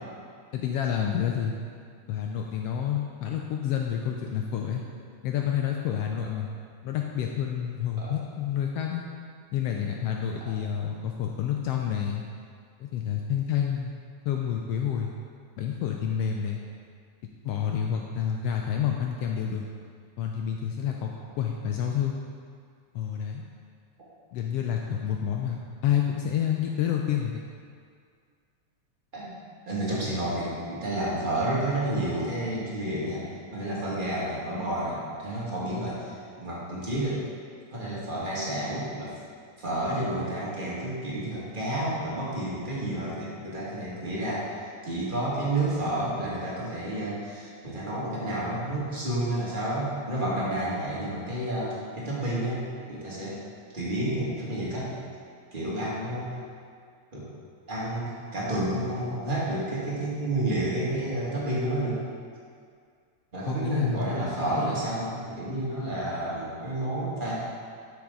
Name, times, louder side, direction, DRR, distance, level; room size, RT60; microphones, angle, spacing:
voice 1, 0.5-1.6 2.1-4.8 5.2-6.5 6.8-9.0 9.5-12.2 12.8-13.9 14.2-15.1 15.6-16.6 17.4-19.6 20.2-21.1 21.4-22.2 22.9-23.5 24.3-27.4 63.5-64.0, left 9 dB, 90° left, 1 dB, 1.3 m, -29 dB
voice 2, 29.6-33.2 33.5-37.2 37.7-39.1 39.6-53.4 53.7-54.9 55.5-56.3 57.1-57.3 57.7-62.0 63.3-67.4, right 1 dB, 20° right, -7 dB, 1.5 m, -30 dB
12.0 x 6.2 x 3.8 m, 2.2 s
omnidirectional pair, 3.3 m